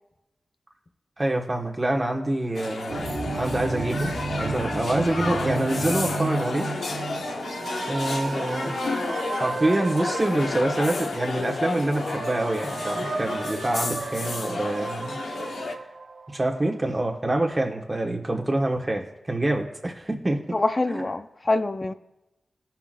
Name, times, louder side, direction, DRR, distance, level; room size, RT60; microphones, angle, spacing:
voice 1, 1.2-6.7 7.0-7.2 7.8-8.9 9.4-15.2 15.4-15.8 16.3-20.6 20.9-21.0, right 1 dB, 25° right, 1 dB, 1.4 m, -26 dB
sound 1, 2.5-15.7, left 3 dB, 85° left, 0.8 m, -32 dB
sound 2, 2.9-16.3, right 3 dB, 45° right, 1.0 m, -35 dB
Angelic voice, 6.3-11.3 11.7-16.5, right 3 dB, 70° right, 0.7 m, -35 dB
voice 2, 20.5-21.9, left 2 dB, 35° left, 11 dB, 0.4 m, -25 dB
17.5 x 5.8 x 2.5 m, 0.92 s
wide cardioid pair, 85°, 0 cm